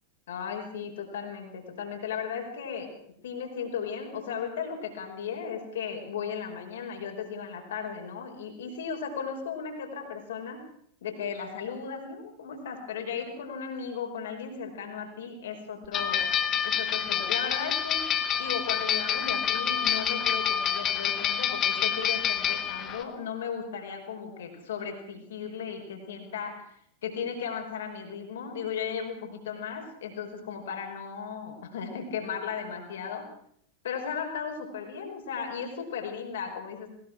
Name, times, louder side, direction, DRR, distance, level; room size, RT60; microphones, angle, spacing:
voice 1, 0.3-2.9 3.2-10.7 11.0-16.3 16.6-18.0 18.4-26.7 27.0-33.3 33.8-36.9, left 6 dB, 60° left, 2 dB, 5.4 m, -36 dB
sound 1, 15.9-23.0, left 8 dB, 30° left, 2.2 m, -27 dB
21.5 x 19.5 x 6.3 m, 0.67 s
figure-of-eight pair, 90°, 0 cm